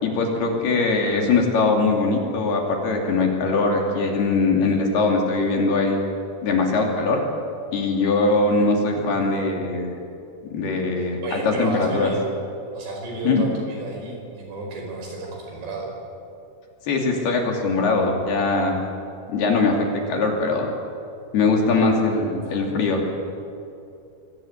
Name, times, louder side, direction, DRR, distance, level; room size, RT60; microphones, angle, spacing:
voice 1, 0.0-6.0 6.4-7.2 7.7-10.0 10.5-12.1 13.2-13.4 16.9-18.8 19.3-20.7 21.3-23.0, left 3 dB, 60° left, 1 dB, 4.5 m, -21 dB
voice 2, 11.2-12.2 12.7-15.9, right 2 dB, 70° right, 0 dB, 7.4 m, -31 dB
24.0 x 18.5 x 8.7 m, 2.8 s
omnidirectional pair, 5.3 m